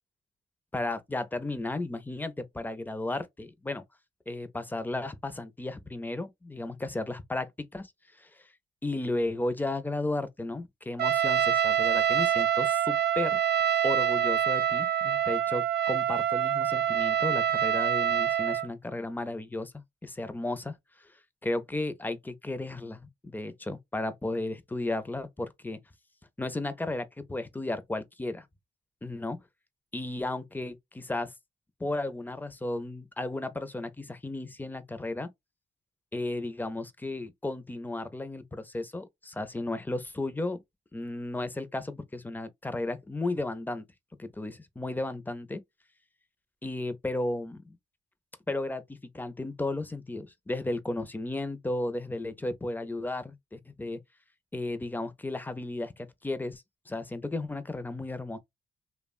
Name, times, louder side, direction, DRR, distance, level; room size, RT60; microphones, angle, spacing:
voice 1, 0.7-3.8 4.3-7.9 8.2-8.5 8.8-13.4 13.8-21.1 21.4-25.8 26.4-28.5 29.0-29.4 29.9-31.3 31.8-35.3 36.1-40.6 40.9-43.9 44.2-45.6 46.6-47.8 48.5-54.0 54.5-58.4, left 2 dB, 10° left, 0.4 m, -34 dB
Trumpet, 11.0-18.7, right 9 dB, 65° right, 0.5 m, -26 dB
2.9 x 2.1 x 2.3 m
cardioid pair, 105°, 18 cm